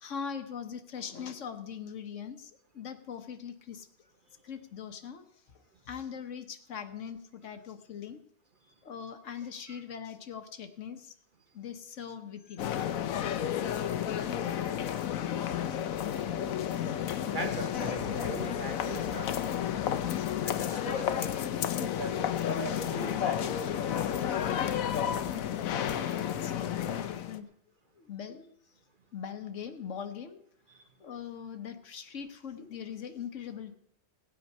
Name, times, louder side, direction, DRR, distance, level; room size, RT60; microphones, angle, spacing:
voice 1, 0.0-3.9 4.4-5.2 5.8-8.2 8.8-11.1 11.5-12.8 25.8-27.5 27.9-28.5 29.1-30.4 31.0-33.7, left 7 dB, 65° left, 9 dB, 1.2 m, -41 dB
Fairly Busy Street Pedestrians + Some Cars, 12.6-27.4, left 9 dB, 90° left, 1.2 m, -31 dB
voice 2, 17.3-19.3 20.4-21.4 21.8-24.7 26.0-26.1, right 2 dB, 40° right, 6 dB, 1.0 m, -40 dB
16.5 x 8.9 x 5.4 m, 0.79 s
omnidirectional pair, 1.4 m